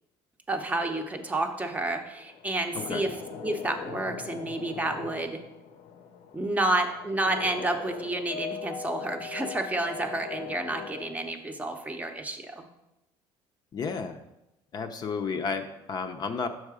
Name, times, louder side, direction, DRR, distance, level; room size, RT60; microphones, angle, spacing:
voice 1, 0.5-3.1 3.4-5.4 6.3-12.7, right 2 dB, 15° right, 5 dB, 0.7 m, -30 dB
sound 1, 1.7-11.3, left 6 dB, 75° left, 0.8 m, -41 dB
voice 2, 13.7-14.2 14.7-16.5, left 5 dB, 40° left, 6 dB, 0.6 m, -32 dB
6.5 x 4.7 x 4.8 m, 0.91 s
cardioid pair, 110°, 11 cm